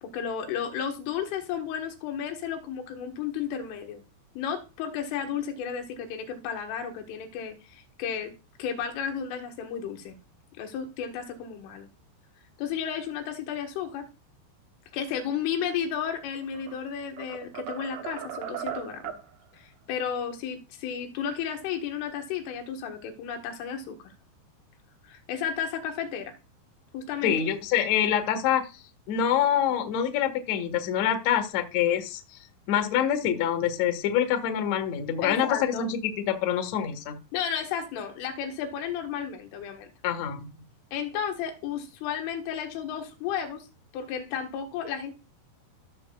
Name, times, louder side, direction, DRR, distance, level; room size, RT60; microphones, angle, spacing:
voice 1, 0.0-4.0 4.4-8.3 8.6-10.2 10.6-11.9 12.6-14.1 14.9-19.1 19.5-24.1 25.0-26.3 26.9-27.4 35.2-35.9 37.3-39.9 40.9-43.7 43.9-45.1, left 8 dB, 90° left, 4.0 m, -33 dB
sound 1, 16.3-16.8 17.2-19.3, right 9 dB, 85° right, 2.0 m, -37 dB
voice 2, 27.2-28.6 29.1-32.4 32.7-37.1 40.0-40.5, left 9 dB, 60° left, 1.8 m, -26 dB
16.0 x 7.0 x 2.4 m
omnidirectional pair, 5.5 m